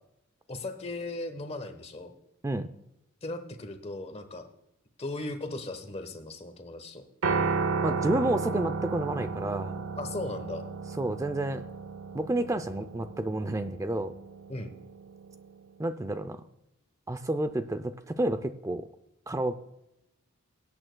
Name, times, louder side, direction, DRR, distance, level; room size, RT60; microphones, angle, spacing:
voice 1, 0.5-2.1 3.2-4.5 5.0-7.0 10.0-10.6 14.5-14.7, left 2 dB, 30° left, 8 dB, 1.0 m, -37 dB
Piano, 7.2-15.5, right 4 dB, 85° right, 0.7 m, -33 dB
voice 2, 7.8-9.8 11.0-11.6 12.1-14.1 15.8-16.4 17.1-18.9 19.3-19.5, right 1 dB, 15° right, 10 dB, 0.4 m, -30 dB
20.0 x 8.8 x 2.2 m, 0.84 s
head